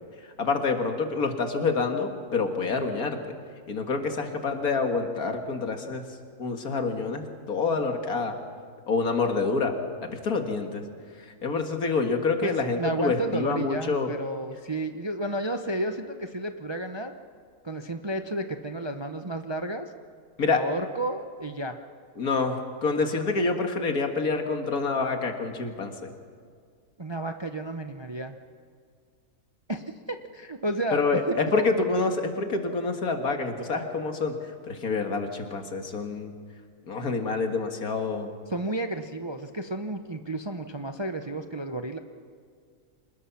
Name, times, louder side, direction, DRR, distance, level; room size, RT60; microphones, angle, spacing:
voice 1, 0.4-3.3 3.7-6.1 6.4-8.4 8.9-9.8 10.0-10.8 11.3-14.1 20.4-20.6 22.2-25.9 30.9-34.3 34.6-36.3 36.9-38.3, left 4 dB, 70° left, 5 dB, 2.3 m, -27 dB
voice 2, 12.4-17.1 17.6-19.9 20.4-21.8 27.0-28.4 29.7-29.8 30.3-31.4 38.5-42.0, right 1 dB, 25° right, 6 dB, 0.6 m, -32 dB
25.5 x 20.5 x 5.9 m, 2.1 s
omnidirectional pair, 1.6 m